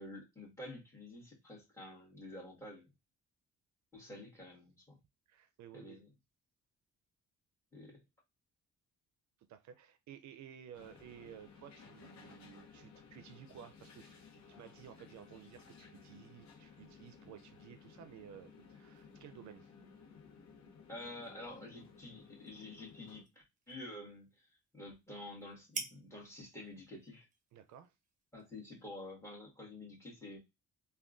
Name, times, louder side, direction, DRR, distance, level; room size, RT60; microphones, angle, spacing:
voice 1, 0.0-2.9 3.9-5.0 5.7-6.1 7.7-8.0 20.9-23.3 23.7-27.3 28.3-30.4, left 1 dB, 10° left, 1.6 m, -49 dB
voice 2, 5.3-6.0 9.5-19.7 27.5-27.9, right 9 dB, 70° right, 0.5 m, -55 dB
sound 1, 10.7-23.2, left 5 dB, 65° left, 0.8 m, -57 dB
sound 2, 21.4-29.1, right 3 dB, 25° right, 0.8 m, -52 dB
3.5 x 2.3 x 2.4 m
cardioid pair, 90°, 30 cm